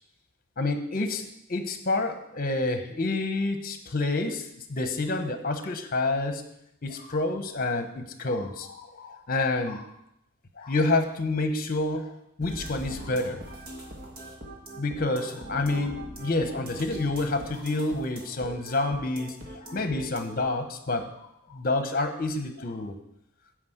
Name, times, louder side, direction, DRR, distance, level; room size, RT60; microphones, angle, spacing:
voice 1, 0.6-6.4 6.8-9.9 10.6-13.4 14.8-23.0, left 2 dB, 40° left, 7 dB, 1.0 m, -28 dB
sound 1, 12.4-20.4, right 1 dB, 40° right, 1.5 m, -42 dB
9.5 x 5.0 x 7.9 m, 0.79 s
head